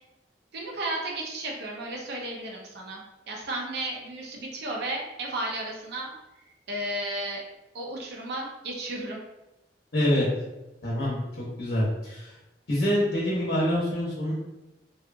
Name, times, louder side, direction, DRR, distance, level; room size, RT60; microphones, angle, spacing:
voice 1, 0.5-7.4 7.7-9.2, right 1 dB, 65° right, -1 dB, 0.5 m, -34 dB
voice 2, 9.9-10.3 10.8-12.3 12.7-14.3, equal, 75° left, -6 dB, 0.7 m, -26 dB
2.7 x 2.3 x 2.4 m, 0.98 s
head